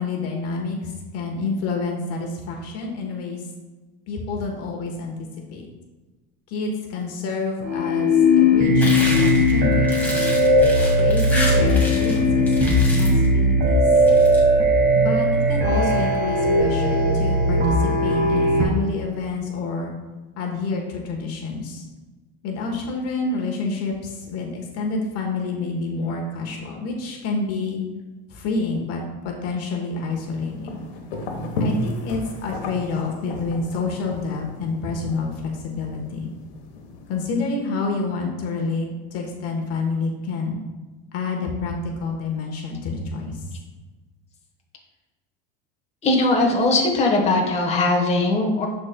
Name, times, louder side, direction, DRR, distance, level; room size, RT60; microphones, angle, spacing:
voice 1, 0.0-3.5 4.1-5.7 6.5-10.4 11.0-13.8 14.9-19.9 20.4-21.9 22.4-27.8 28.3-30.8 31.6-36.3 37.1-40.6 41.1-43.5, left 3 dB, 50° left, 1 dB, 1.2 m, -28 dB
sound 1, 7.6-18.7, left 1 dB, 35° right, 1.3 m, -18 dB
sound 2, 8.8-12.2 12.5-13.2 13.9-14.4, left 1 dB, 5° left, 1.7 m, -30 dB
sound 3, 30.1-37.3, left 1 dB, 90° left, 1.2 m, -33 dB
voice 2, 46.0-48.7, left 2 dB, 20° left, 0 dB, 1.2 m, -20 dB
11.5 x 4.2 x 2.2 m, 1.2 s
supercardioid pair, 125°, 31 cm